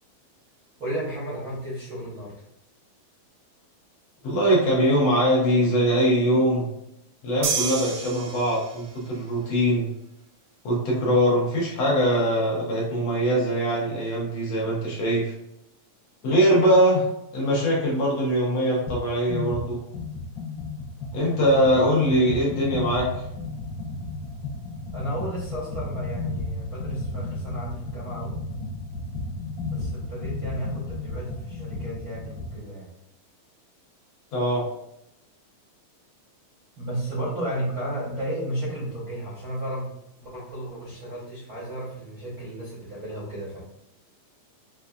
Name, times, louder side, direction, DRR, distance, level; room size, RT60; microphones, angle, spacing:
voice 1, 0.8-2.3 22.0-22.5 24.9-28.4 29.6-32.9 36.8-39.9 40.2-43.6, right 1 dB, 70° right, -8 dB, 0.8 m, -33 dB
voice 2, 4.2-6.7 7.2-9.9 10.7-15.3 16.2-17.1 17.3-19.8 21.1-23.3 34.3-34.7, equal, 70° left, -4 dB, 1.7 m, -22 dB
sound 1, 7.4-9.0, right 6 dB, 90° right, 2.1 m, -29 dB
sound 2, 18.9-19.0 19.3-32.6, left 2 dB, 90° left, 2.3 m, -33 dB
5.4 x 2.3 x 2.3 m, 0.83 s
omnidirectional pair, 3.4 m